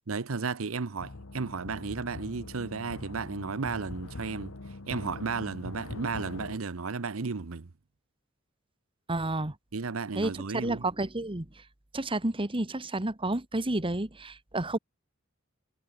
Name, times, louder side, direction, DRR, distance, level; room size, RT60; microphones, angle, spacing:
voice 1, 0.1-4.5 4.9-7.7 9.7-10.8, right 4 dB, 80° right, 0.8 m, -34 dB
sound 1, 1.0-6.6, left 2 dB, 80° left, 1.4 m, -42 dB
voice 2, 9.1-9.5 10.1-11.5 11.9-14.8, right 2 dB, 25° right, 1.5 m, -30 dB
head